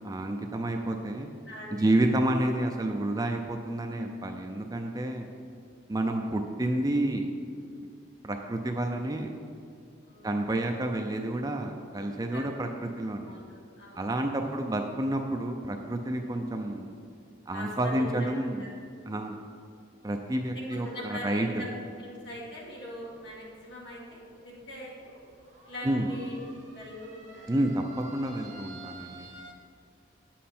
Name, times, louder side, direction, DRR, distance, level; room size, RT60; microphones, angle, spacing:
voice 1, 0.0-1.3 1.7-5.3 5.9-7.3 8.2-9.3 10.2-13.4 14.0-16.9 17.5-18.7 19.1-19.4 20.0-21.7 25.8-26.1 27.5-29.3, right 1 dB, 20° right, 3 dB, 0.4 m, -29 dB
voice 2, 1.5-2.0 5.9-6.0 10.0-10.3 12.3-12.4 13.3-13.4 13.8-14.1 17.5-18.3 18.6-18.7 20.7-21.7 22.0-25.2 25.6-26.4 26.7-27.5, left 1 dB, 60° left, -6 dB, 2.5 m, -42 dB
sound 1, 22.2-29.5, right 3 dB, 40° right, 1.0 m, -52 dB
9.2 x 7.4 x 4.3 m, 2.4 s
head